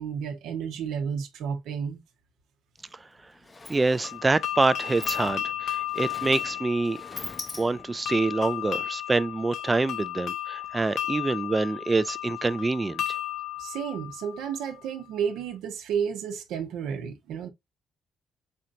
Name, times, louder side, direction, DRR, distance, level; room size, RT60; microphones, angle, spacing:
voice 1, 0.0-2.0 13.6-17.5, right 7 dB, 85° right, 0.8 m, -32 dB
Sliding door, 2.8-2.9 3.2-8.1, left 3 dB, 25° left, 0.6 m, -42 dB
voice 2, 3.7-7.0 7.6-13.0, right 3 dB, 20° right, 0.3 m, -26 dB
sound 1, 4.0-14.9, left 11 dB, 70° left, 0.7 m, -34 dB
4.4 x 4.0 x 2.4 m
cardioid pair, 90°, 0 cm